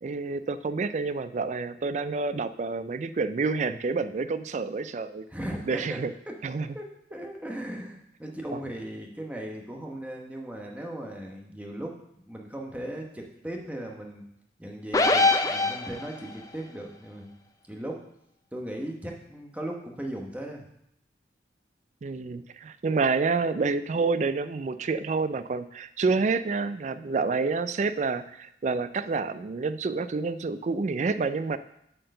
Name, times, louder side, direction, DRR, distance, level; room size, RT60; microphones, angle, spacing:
voice 1, 0.0-5.2 5.7-6.1 6.4-6.7 8.5-8.6 22.0-31.6, right 4 dB, 40° right, 13 dB, 0.3 m, -28 dB
voice 2, 5.3-6.0 6.3-6.4 6.7-11.9 12.3-14.2 14.6-17.3 17.7-18.0 18.5-20.7, right 1 dB, 10° right, 1 dB, 1.0 m, -37 dB
sound 1, 14.9-16.3, left 3 dB, 20° left, 0.5 m, -23 dB
7.6 x 4.5 x 6.6 m, 0.76 s
head